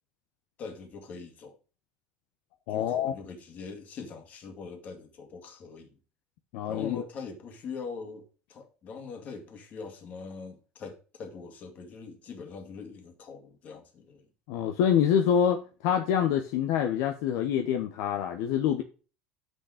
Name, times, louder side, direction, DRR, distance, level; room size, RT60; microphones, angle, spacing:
voice 1, 0.6-1.6 2.7-6.0 6.7-14.3, left 5 dB, 45° left, 2.2 m, -42 dB
voice 2, 2.7-3.1 6.5-7.0 14.5-18.8, left 9 dB, 75° left, 0.9 m, -26 dB
8.0 x 6.4 x 5.0 m
supercardioid pair, 100°, 4 cm